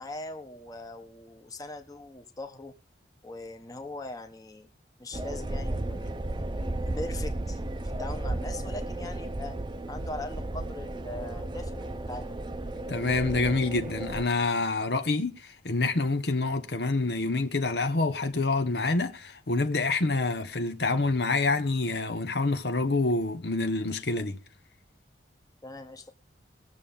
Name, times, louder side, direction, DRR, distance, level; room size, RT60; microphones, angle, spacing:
voice 1, 0.0-2.7 3.2-4.7 5.0-6.2 6.9-7.6 8.0-9.5 9.9-12.4 25.6-26.1, left 2 dB, 20° left, 1.1 m, -41 dB
sound 1, 5.1-14.2, right 1 dB, 25° right, 0.7 m, -34 dB
voice 2, 12.9-24.4, left 3 dB, 65° left, 1.0 m, -27 dB
20.5 x 7.1 x 3.7 m
head